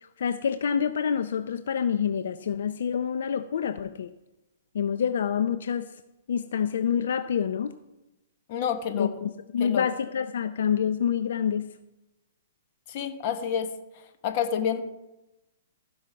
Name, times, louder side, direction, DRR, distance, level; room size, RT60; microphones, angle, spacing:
voice 1, 0.0-4.1 4.7-5.9 6.3-7.7 8.9-11.7, left 7 dB, 70° left, 10 dB, 0.5 m, -27 dB
voice 2, 8.5-9.1 9.6-9.8 12.9-14.8, left 8 dB, 40° left, 7 dB, 1.3 m, -29 dB
15.0 x 5.5 x 5.8 m, 0.99 s
hypercardioid pair, 155°, 0 cm